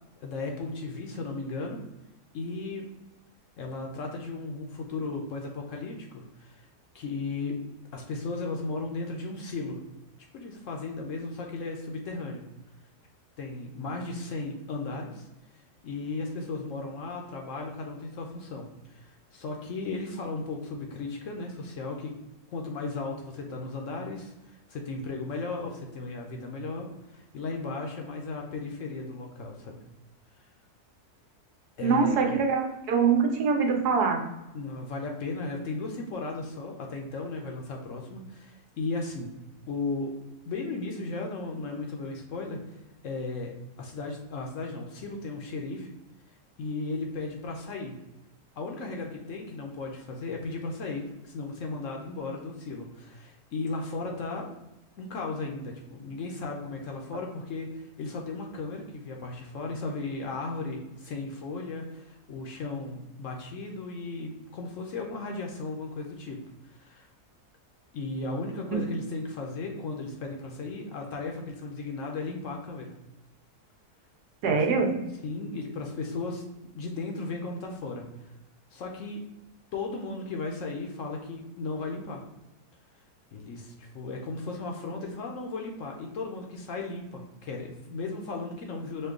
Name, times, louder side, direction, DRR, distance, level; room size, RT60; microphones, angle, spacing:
voice 1, 0.2-1.8 2.3-2.9 3.6-6.7 6.9-7.6 7.9-9.8 10.3-12.4 13.4-15.3 15.5-22.1 22.5-29.7 31.8-32.1 34.5-39.3 39.7-40.1 40.5-42.8 43.0-45.9 46.6-48.0 48.6-54.5 55.0-66.4 66.6-67.1 67.9-72.9 74.5-74.6 75.2-76.4 76.7-78.3 78.7-79.2 79.7-82.2 83.3-89.1, left 3 dB, 65° left, 1 dB, 0.8 m, -35 dB
voice 2, 31.8-34.2 68.7-68.8 74.4-74.9, right 5 dB, 80° right, 2 dB, 1.3 m, -24 dB
5.2 x 2.2 x 3.6 m, 0.94 s
omnidirectional pair, 1.7 m